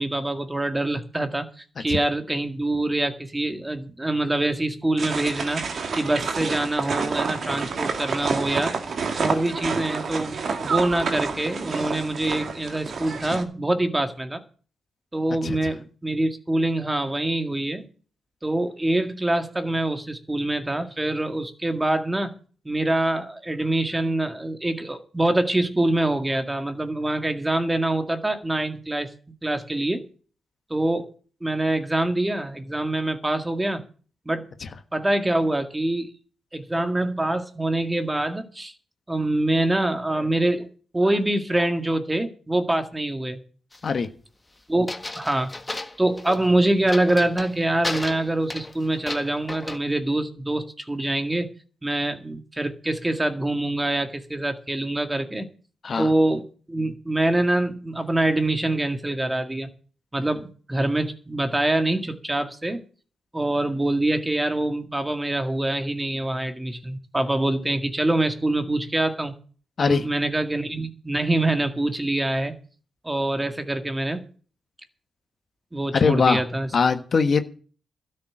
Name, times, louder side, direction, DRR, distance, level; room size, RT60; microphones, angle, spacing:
voice 1, 0.0-5.6 5.9-8.7 9.2-14.4 15.1-17.9 18.4-22.3 22.7-29.1 29.4-30.1 30.7-31.1 31.4-33.8 34.3-34.5 34.9-36.1 36.5-38.7 39.1-40.7 40.9-43.4 44.7-44.9 45.2-45.5 46.0-51.5 51.8-55.5 56.0-59.7 60.1-62.8 63.3-69.3 69.8-72.5 73.0-74.3 75.7-76.7, right 1 dB, 15° right, 8 dB, 1.9 m, -25 dB
sound 1, 5.0-13.4, right 5 dB, 55° right, 2.2 m, -29 dB
sound 2, 43.7-44.1 44.9-46.5 46.9-47.6 47.8-49.8, left 2 dB, 20° left, 1.6 m, -34 dB
voice 2, 75.9-76.4 76.7-77.4, left 5 dB, 50° left, 8 dB, 1.4 m, -21 dB
12.5 x 7.0 x 8.8 m, 0.41 s
cardioid pair, 65°, 0 cm